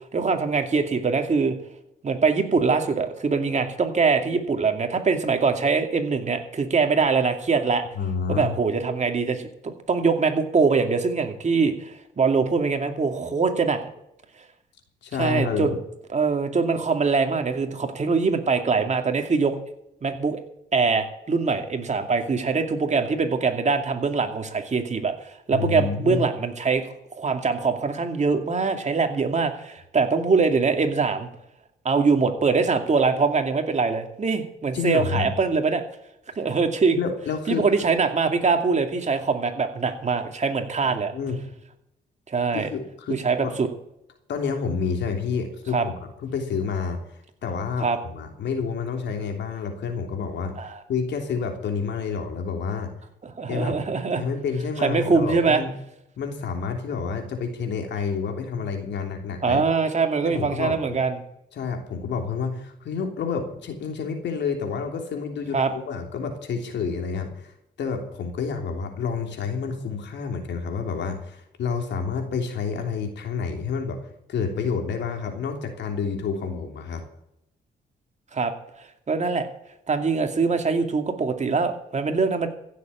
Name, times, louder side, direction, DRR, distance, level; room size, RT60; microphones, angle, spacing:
voice 1, 0.1-1.6 2.0-7.8 8.3-9.5 9.9-13.8 15.2-15.7 16.1-19.5 20.0-20.4 20.7-26.8 27.1-31.3 31.8-35.8 36.4-37.0 37.5-41.1 42.3-42.7 43.2-43.7 45.7-45.8 47.8-48.0 50.6-50.8 53.2-54.2 54.8-55.6 59.4-61.2 65.5-65.7 78.3-78.5 79.1-79.5 79.9-82.5, right 4 dB, 40° right, 5 dB, 2.4 m, -23 dB
voice 2, 7.9-8.6 15.0-15.8 25.5-26.3 34.7-35.3 37.0-37.7 40.8-41.4 42.5-43.5 44.3-45.9 46.2-50.5 50.9-52.9 53.5-53.8 54.2-55.7 56.2-59.6 60.2-61.0 61.5-74.0 74.3-77.0, left 5 dB, 80° left, 4 dB, 3.2 m, -29 dB
15.5 x 7.3 x 8.7 m, 0.80 s
cardioid pair, 80°, 18 cm